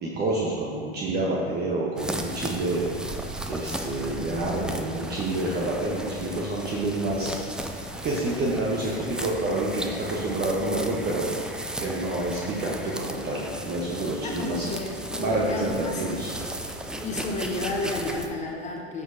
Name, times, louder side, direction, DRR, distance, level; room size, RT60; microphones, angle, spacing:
voice 1, 0.0-2.9 3.5-7.3 8.0-11.3 11.8-14.7 15.2-16.3, right 2 dB, 30° right, -4 dB, 1.1 m, -28 dB
sound 1, 2.0-18.3, right 1 dB, 5° right, 0.3 m, -35 dB
voice 2, 14.2-16.0 17.0-19.0, left 2 dB, 20° left, 1 dB, 1.2 m, -32 dB
11.0 x 6.5 x 2.8 m, 2.3 s
hypercardioid pair, 100°, 32 cm